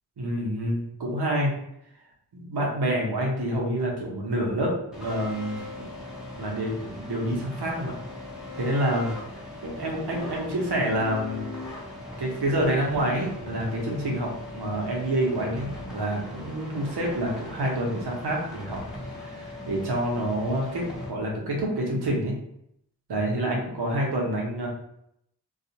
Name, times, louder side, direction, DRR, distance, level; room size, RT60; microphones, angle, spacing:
voice 1, 0.2-1.5 2.3-5.6 6.4-7.9 8.5-11.5 12.2-18.8 19.2-22.3 23.1-24.7, right 1 dB, 80° right, -1 dB, 0.9 m, -27 dB
sound 1, 4.9-21.1, left 2 dB, ahead, 0.8 m, -39 dB
2.4 x 2.3 x 2.8 m, 0.75 s
cardioid pair, 50°, 39 cm